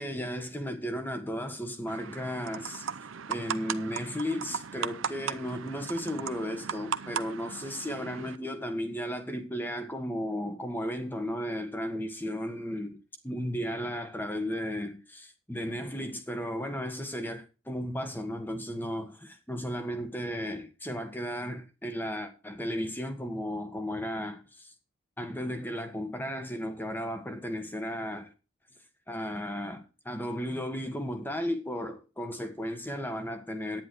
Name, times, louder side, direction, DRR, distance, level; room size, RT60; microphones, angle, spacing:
voice 1, 0.0-2.9 3.3-13.0 13.2-24.7 25.2-28.3 29.1-33.8, equal, 10° left, 1.5 m, -34 dB
sound 1, 1.9-8.4, right 7 dB, 75° right, 0.7 m, -37 dB
11.0 x 9.9 x 4.7 m
head